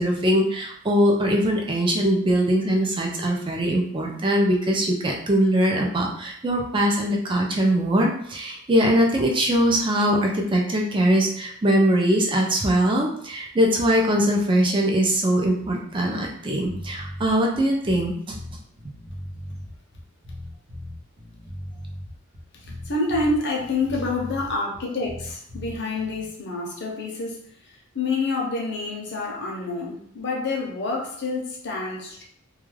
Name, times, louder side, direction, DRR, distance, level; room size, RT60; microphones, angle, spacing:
voice 1, 0.0-18.4, equal, 25° right, 0 dB, 0.4 m, -21 dB
sound 1, 16.7-26.3, equal, 75° right, 0.7 m, -38 dB
voice 2, 22.7-27.4 27.9-32.2, left 3 dB, 55° left, -1 dB, 0.6 m, -27 dB
2.3 x 2.2 x 3.1 m, 0.65 s
head